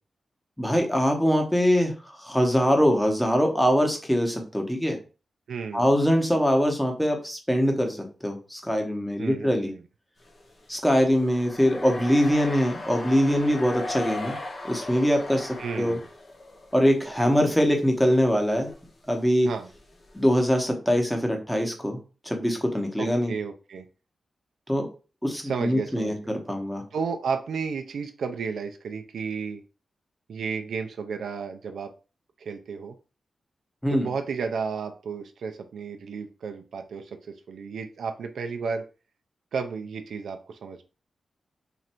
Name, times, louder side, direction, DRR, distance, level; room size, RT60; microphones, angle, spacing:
voice 1, 0.6-5.0 5.7-9.7 10.7-14.4 14.6-16.0 16.7-18.7 19.1-19.5 20.1-22.0 22.2-23.3 24.7-24.9 25.2-26.8 33.8-34.1, equal, 5° left, 3 dB, 0.9 m, -23 dB
voice 2, 5.5-5.9 9.2-9.8 15.6-16.1 19.4-19.7 23.0-23.9 25.4-26.2 26.9-29.6 30.3-31.9 32.4-33.0 33.9-38.8 39.5-40.8, right 5 dB, 90° right, 6 dB, 0.4 m, -33 dB
sound 1, 10.2-16.9 17.2-17.8 18.1-18.2 18.6-18.8 19.4-20.7, left 2 dB, 45° left, 0.8 m, -38 dB
3.2 x 2.5 x 4.3 m, 0.34 s
wide cardioid pair, 120°, 0 cm